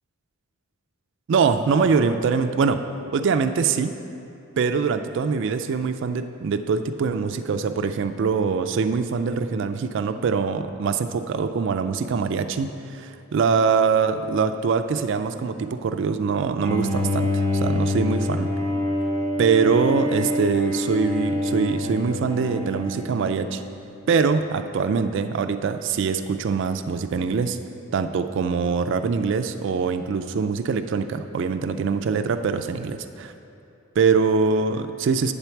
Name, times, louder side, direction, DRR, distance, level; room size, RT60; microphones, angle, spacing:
voice 1, 1.3-2.8 3.1-4.0 4.6-18.5 19.4-23.6 24.1-27.6 27.9-33.3 34.0-35.3, right 5 dB, 60° right, 8 dB, 0.3 m, -23 dB
Bowed string instrument, 16.6-23.9, left 1 dB, 10° left, 1.1 m, -26 dB
8.6 x 4.5 x 6.9 m, 2.8 s
head